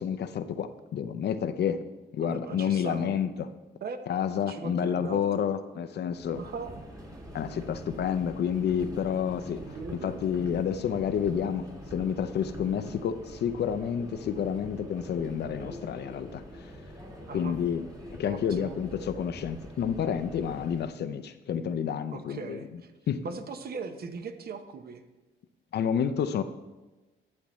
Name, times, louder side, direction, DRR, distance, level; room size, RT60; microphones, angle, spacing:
voice 1, 0.0-1.8 2.1-3.5 4.1-6.4 7.3-9.6 9.9-16.7 17.3-17.9 18.2-22.7 23.1-23.3 25.7-26.4, left 8 dB, 55° left, 11 dB, 0.5 m, -29 dB
voice 2, 2.2-3.2 3.8-5.5 6.4-6.8 9.7-10.2 17.3-17.6 18.2-18.8 22.1-22.9 23.2-25.0, right 4 dB, 50° right, 8 dB, 0.8 m, -39 dB
Subway metro underground, 6.1-21.0, equal, 15° right, 1.4 m, -45 dB
12.0 x 7.4 x 3.1 m, 1.1 s
cardioid pair, 90°, 20 cm